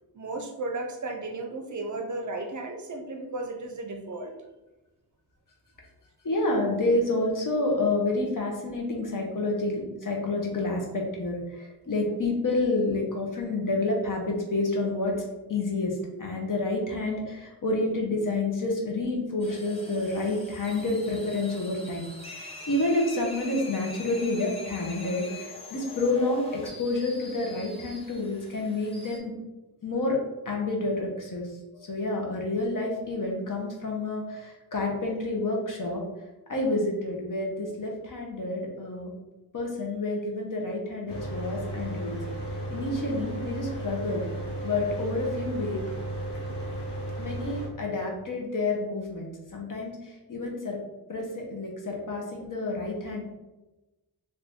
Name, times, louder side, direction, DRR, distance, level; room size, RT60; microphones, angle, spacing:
voice 1, 0.1-4.3, right 2 dB, 50° right, 4 dB, 0.6 m, -34 dB
voice 2, 6.2-15.2 15.5-29.3 29.8-30.2 30.4-31.5 31.7-36.0 36.5-39.1 39.5-42.2 42.7-44.2 44.6-45.8 47.2-50.8 51.1-53.2, left 2 dB, 50° left, 0 dB, 0.9 m, -29 dB
sound 1, 19.4-29.2, left 2 dB, 15° left, 0.8 m, -44 dB
Mechanical fan, 41.1-47.7, right 1 dB, 90° left, 0.9 m, -34 dB
2.8 x 2.6 x 3.5 m, 1.1 s
cardioid pair, 65°, 40 cm